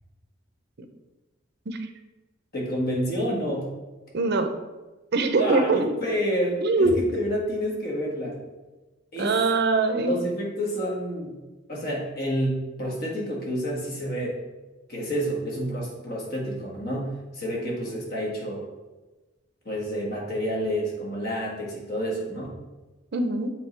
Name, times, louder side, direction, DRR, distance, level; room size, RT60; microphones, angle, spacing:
voice 1, 2.5-3.7 5.4-8.4 9.1-9.3 9.9-11.4 11.7-14.4 14.9-18.6 19.6-22.5, equal, 55° left, -3 dB, 1.7 m, -29 dB
voice 2, 4.1-4.5 5.1-5.9 6.6-6.9 9.2-10.2 23.1-23.5, right 3 dB, 60° right, 7 dB, 0.6 m, -23 dB
7.9 x 3.7 x 3.2 m, 1.2 s
head